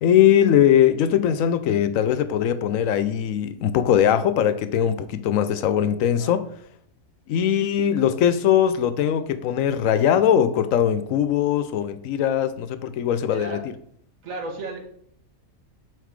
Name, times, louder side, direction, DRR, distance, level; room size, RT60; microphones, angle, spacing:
voice 1, 0.0-6.5 7.3-13.6, left 9 dB, 85° left, 1.0 m, -20 dB
voice 2, 6.1-6.5 13.3-13.6 14.2-14.8, right 2 dB, 85° right, 1.7 m, -34 dB
7.2 x 3.9 x 4.7 m
omnidirectional pair, 1.4 m